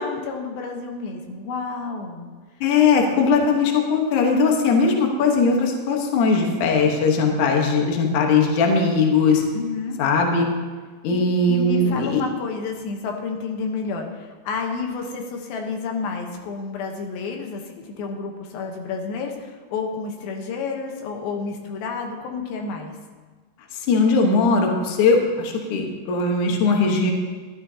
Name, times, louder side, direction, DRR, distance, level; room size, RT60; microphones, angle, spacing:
voice 1, 0.0-2.3 3.4-3.5 9.5-10.0 11.1-11.2 11.5-22.9, left 4 dB, 85° left, 2 dB, 2.9 m, -30 dB
voice 2, 2.6-9.4 10.0-10.5 11.0-12.2 23.9-27.1, left 4 dB, 65° left, 1 dB, 2.5 m, -19 dB
15.0 x 12.0 x 2.8 m, 1.4 s
omnidirectional pair, 4.1 m